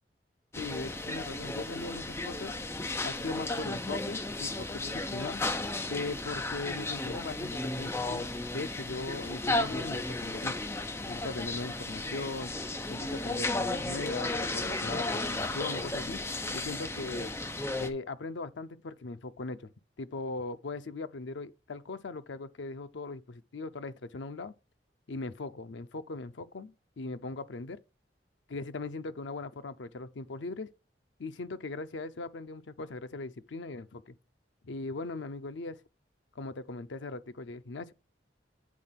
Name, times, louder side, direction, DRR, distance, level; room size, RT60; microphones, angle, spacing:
sound 1, 0.5-17.9, left 2 dB, 15° left, 0.6 m, -34 dB
voice 1, 0.6-2.5 3.0-5.4 5.9-10.7 11.1-12.5 12.9-16.2 16.5-17.3 17.8-19.7 20.0-24.5 25.1-27.8 28.5-30.7 31.2-34.1 34.6-35.8 36.4-37.9, left 3 dB, 85° left, 0.6 m, -39 dB
8.5 x 3.6 x 5.8 m
head